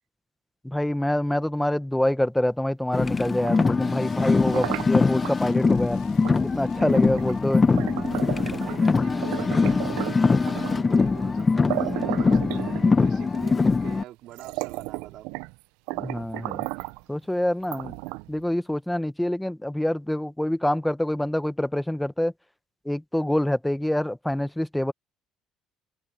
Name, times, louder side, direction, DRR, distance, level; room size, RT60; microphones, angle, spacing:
voice 1, 0.6-6.0 6.5-7.7 15.9-16.7 17.1-17.9 18.3-22.3 22.8-24.9, left 1 dB, 5° left, 1.1 m, -26 dB
Car, 2.9-14.0, left 4 dB, 25° left, 0.8 m, -23 dB
sound 1, 3.3-5.4 6.2-6.4 6.8-8.9 9.2-10.9 11.4-11.5 11.7-13.2 13.9-14.0 14.3-15.6 15.9-17.0 17.6-18.4, right 23 dB, 85° right, 0.4 m, -34 dB
sound 2, 3.8-8.7, left 14 dB, 70° left, 3.8 m, -50 dB
voice 2, 6.7-7.1 8.6-15.3, right 14 dB, 70° right, 3.9 m, -43 dB
supercardioid pair, 85°, 0 cm